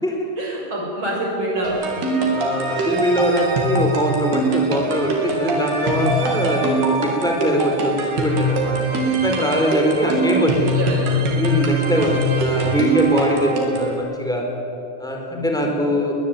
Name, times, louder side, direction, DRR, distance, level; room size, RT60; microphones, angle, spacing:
voice 1, 0.4-2.5 9.9-11.3 12.2-12.6 15.3-15.7, right 1 dB, 30° right, -1 dB, 6.8 m, -28 dB
sound 1, 1.6-13.9, right 1 dB, 70° right, 5.1 m, -23 dB
voice 2, 2.3-8.9 9.2-10.8 11.3-14.4 15.0-16.1, equal, ahead, 1 dB, 4.0 m, -21 dB
22.0 x 21.5 x 9.3 m, 2.8 s
omnidirectional pair, 4.9 m